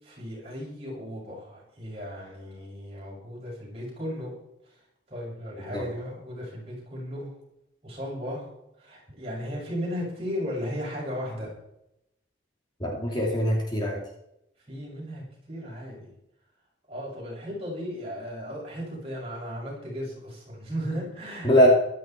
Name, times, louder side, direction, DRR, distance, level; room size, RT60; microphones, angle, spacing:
voice 1, 0.0-4.4 5.1-7.3 7.8-8.4 8.8-11.5 14.7-16.1 16.9-21.7, equal, 30° right, -4 dB, 7.1 m, -35 dB
voice 2, 12.8-14.0 21.4-21.7, equal, 25° left, -1 dB, 2.7 m, -22 dB
15.5 x 12.5 x 4.6 m, 0.80 s
head